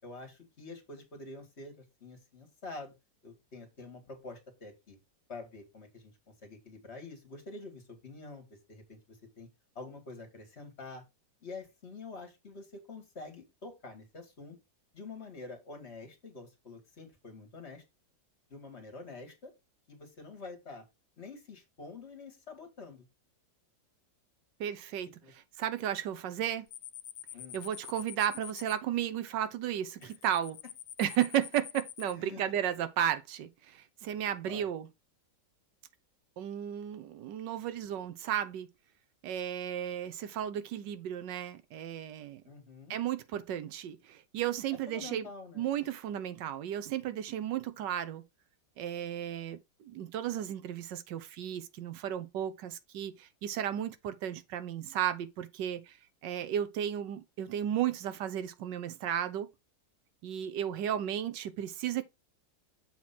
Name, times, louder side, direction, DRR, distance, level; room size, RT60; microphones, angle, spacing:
voice 1, 0.0-2.9 3.2-5.0 5.3-9.5 9.8-11.0 11.4-14.6 14.9-17.8 18.5-19.5 19.9-20.8 21.2-23.1 25.2-25.3 27.3-27.6 30.0-30.1 32.0-32.5 34.5-34.7 42.5-43.0 44.9-45.7, left 3 dB, 35° left, 2.1 m, -47 dB
voice 2, 24.6-26.7 27.5-30.6 31.0-34.9 36.4-38.7 39.2-42.4 42.9-45.3 45.6-48.2 48.8-56.0 56.2-59.5 60.2-62.0, right 10 dB, 75° right, 1.3 m, -34 dB
sound 1, 26.7-28.7 30.0-32.1, left 11 dB, 75° left, 1.3 m, -46 dB
7.3 x 3.0 x 5.7 m
omnidirectional pair, 2.0 m